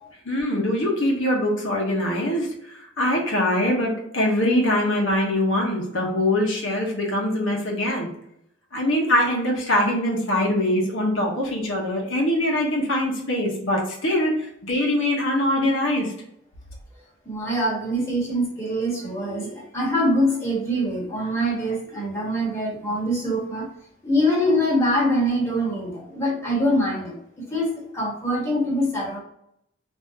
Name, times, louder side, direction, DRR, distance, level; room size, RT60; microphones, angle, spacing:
voice 1, 0.2-8.1 8.7-16.1, left 1 dB, 80° left, -1 dB, 0.9 m, -23 dB
voice 2, 17.2-23.7 24.0-29.2, equal, 15° left, -5 dB, 1.2 m, -24 dB
3.5 x 2.6 x 2.8 m, 0.76 s
head